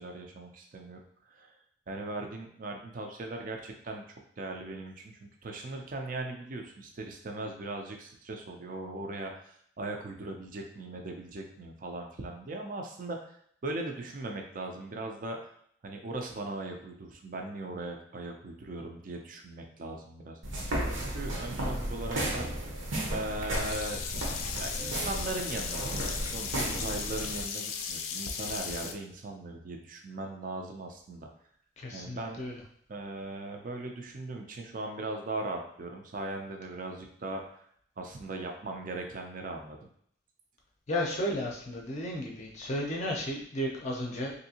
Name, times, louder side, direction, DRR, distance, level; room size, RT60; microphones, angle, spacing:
voice 1, 0.0-4.0 4.4-15.5 15.8-20.4 20.9-22.5 23.1-24.0 24.5-31.3 31.9-32.4 32.9-37.7 38.0-39.8, right 2 dB, 40° right, 3 dB, 0.4 m, -39 dB
sound 1, 20.4-27.4, right 1 dB, 70° right, 0.8 m, -34 dB
Sink (filling or washing), 23.5-28.9, left 6 dB, 85° left, 0.4 m, -36 dB
voice 2, 31.8-32.6 40.9-44.3, left 1 dB, 35° left, 0 dB, 0.5 m, -33 dB
3.3 x 2.6 x 2.8 m, 0.66 s
head